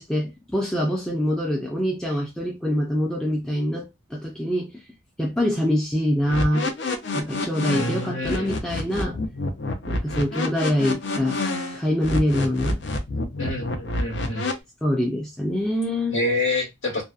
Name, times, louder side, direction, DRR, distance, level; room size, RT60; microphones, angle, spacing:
voice 1, 0.0-4.7 5.2-6.7 7.1-9.2 9.9-11.4 11.7-12.8 14.8-16.2, equal, 5° left, 0.3 m, -25 dB
sound 1, 6.3-14.5, left 2 dB, 65° left, 0.5 m, -28 dB
voice 2, 7.7-8.5 13.4-14.5 16.1-17.0, left 2 dB, 85° left, 1.3 m, -27 dB
2.6 x 2.1 x 2.3 m
head